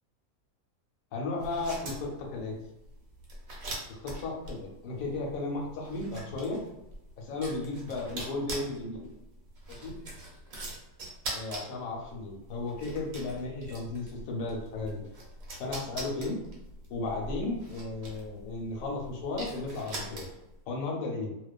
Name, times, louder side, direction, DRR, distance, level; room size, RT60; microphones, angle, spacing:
voice 1, 1.1-2.6 3.9-6.6 7.2-9.1 9.7-10.0 11.3-15.0 15.6-16.4 16.9-20.3 20.7-21.4, left 3 dB, 75° left, 0 dB, 1.0 m, -35 dB
sound 1, 1.4-20.6, right 1 dB, 75° right, 1.1 m, -43 dB
2.4 x 2.2 x 2.3 m, 0.93 s
omnidirectional pair, 1.5 m